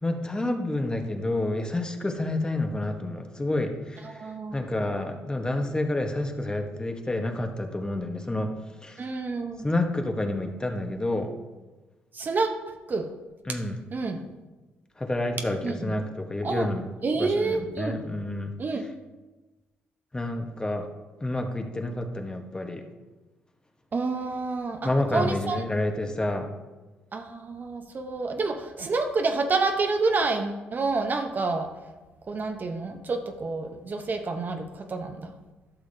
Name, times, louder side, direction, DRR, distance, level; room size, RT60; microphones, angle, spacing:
voice 1, 0.0-4.2 4.5-8.5 8.8-9.1 9.6-11.3 13.5-13.8 15.0-16.9 17.2-18.5 20.1-20.9 21.2-22.8 24.8-26.5, left 1 dB, 20° left, 4 dB, 1.0 m, -29 dB
voice 2, 4.0-4.6 9.0-9.7 12.1-13.1 13.5-13.6 13.9-14.2 15.6-15.9 16.4-16.7 17.0-18.0 18.6-18.8 23.9-25.6 27.1-31.7 32.3-35.3, right 3 dB, 45° right, 5 dB, 0.8 m, -28 dB
11.5 x 6.2 x 2.7 m, 1.2 s
supercardioid pair, 60°, 5 cm